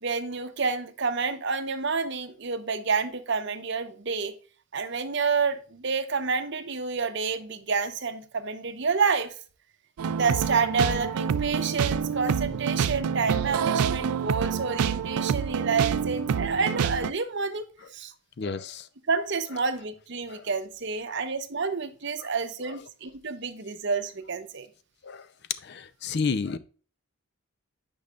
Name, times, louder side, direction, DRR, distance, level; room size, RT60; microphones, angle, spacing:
voice 1, 0.0-4.3 4.7-9.3 10.1-17.6 17.9-18.1 19.1-24.7, right 5 dB, 55° right, 0.8 m, -29 dB
sound 1, 10.0-17.1, right 7 dB, 90° right, 0.4 m, -27 dB
voice 2, 18.4-18.9 20.3-20.5 21.1-21.2 22.2-22.3 22.7-22.8 25.0-25.3 25.6-26.6, left 4 dB, 50° left, 0.5 m, -32 dB
8.6 x 5.3 x 2.4 m
head